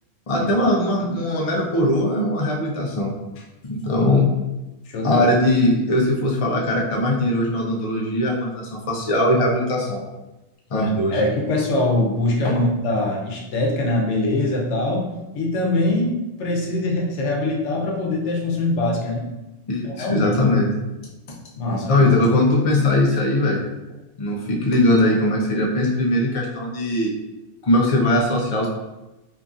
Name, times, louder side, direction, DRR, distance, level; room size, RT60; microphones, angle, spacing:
voice 1, 0.3-3.1 3.6-4.3 5.0-10.0 10.7-11.2 12.4-12.6 19.7-20.7 21.7-23.6 24.2-27.1 27.6-28.7, left 1 dB, 40° left, -2 dB, 0.5 m, -20 dB
voice 2, 4.9-5.3 11.1-19.3 19.8-20.4 21.6-22.1, left 2 dB, 85° left, -1 dB, 0.9 m, -23 dB
2.8 x 2.5 x 2.4 m, 1.0 s
omnidirectional pair, 1.2 m